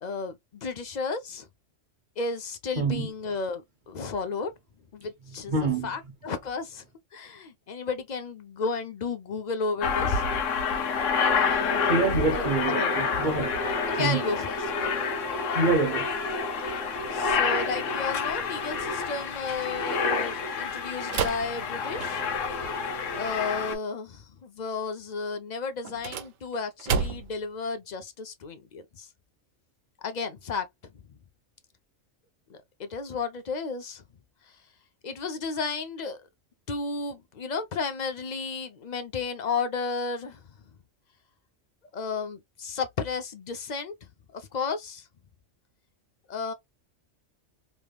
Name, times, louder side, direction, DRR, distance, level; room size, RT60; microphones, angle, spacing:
voice 1, 0.0-1.5 2.2-4.5 4.9-6.8 7.1-10.2 11.3-12.9 13.9-15.0 17.1-22.2 23.2-29.1 30.0-30.6 32.5-34.0 35.0-36.2 36.7-40.4 41.9-43.9 44.3-45.1 46.3-46.5, left 4 dB, 45° left, 0.6 m, -33 dB
voice 2, 2.8-3.1 5.5-5.9 11.9-13.5 14.0-14.2 15.5-16.1, right 3 dB, 45° right, 0.7 m, -26 dB
Aircraft, 9.8-23.7, left 5 dB, 75° left, 1.1 m, -28 dB
sound 1, 21.1-22.5 25.8-27.5, right 6 dB, 80° right, 1.0 m, -31 dB
3.4 x 3.0 x 2.2 m
omnidirectional pair, 1.3 m